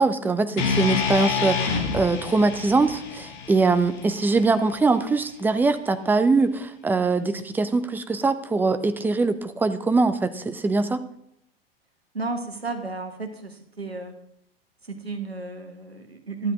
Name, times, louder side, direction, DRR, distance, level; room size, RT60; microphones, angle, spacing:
voice 1, 0.0-11.0, right 3 dB, 5° right, 10 dB, 0.5 m, -22 dB
sound 1, 0.6-4.7, left 5 dB, 45° left, 1.7 m, -28 dB
voice 2, 12.1-14.1 14.8-16.5, right 3 dB, 85° right, 7 dB, 1.2 m, -32 dB
12.5 x 10.0 x 3.6 m, 0.76 s
figure-of-eight pair, 85°, 30 cm